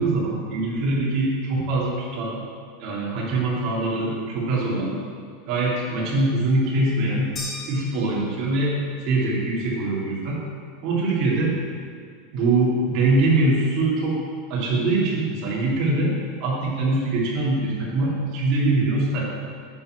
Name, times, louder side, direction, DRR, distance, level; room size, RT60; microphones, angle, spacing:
voice 1, 0.0-2.4 2.8-5.0 5.5-7.3 7.7-8.8 9.0-10.4 10.8-11.6 12.3-14.2 14.5-16.1 16.4-19.2, right 2 dB, 40° right, -5 dB, 2.9 m, -23 dB
sound 1, 7.4-8.8, left 1 dB, 20° left, 2.2 m, -37 dB
11.0 x 4.5 x 7.9 m, 2.1 s
supercardioid pair, 170°, 0 cm